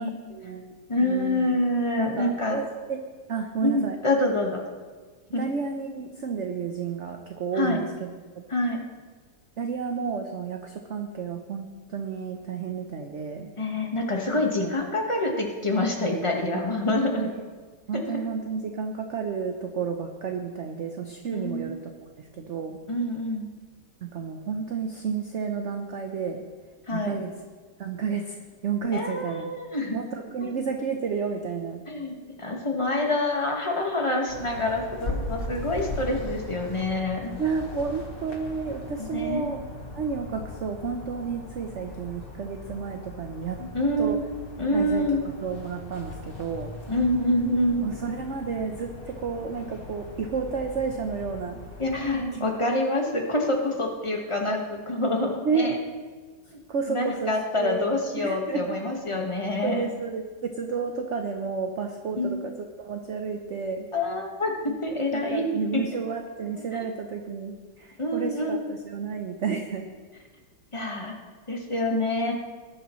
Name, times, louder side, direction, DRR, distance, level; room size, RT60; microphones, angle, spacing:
voice 1, 0.0-0.7 1.0-1.5 2.0-3.0 3.3-4.0 5.4-8.4 9.6-13.5 14.6-14.7 16.5-17.4 17.9-22.8 24.0-26.4 26.9-27.3 27.8-28.4 28.6-29.5 29.9-31.8 37.4-39.6 40.0-43.6 44.0-44.2 44.7-46.7 47.8-51.6 52.3-52.4 55.4-55.7 56.7-57.8 58.2-58.8 59.6-63.9 64.7-64.8 65.1-69.9 71.9-72.1, right 5 dB, 55° right, 4 dB, 0.9 m, -31 dB
voice 2, 0.9-2.6 3.6-4.6 5.3-5.4 7.5-7.8 8.5-8.8 13.6-17.3 17.9-18.2 21.3-21.8 22.9-23.5 26.9-27.2 28.9-30.0 30.5-30.6 31.9-37.3 39.1-39.5 43.6-44.2 44.6-45.2 46.9-47.8 51.8-55.8 56.9-59.8 62.2-62.3 63.9-65.5 65.7-65.8 66.7-66.9 68.0-68.6 70.7-71.2 71.5-72.3, left 1 dB, 20° left, 1 dB, 1.4 m, -26 dB
sound 1, 34.3-52.1, left 2 dB, 35° left, 1.5 m, -39 dB
19.5 x 11.0 x 3.1 m, 1.5 s
omnidirectional pair, 1.9 m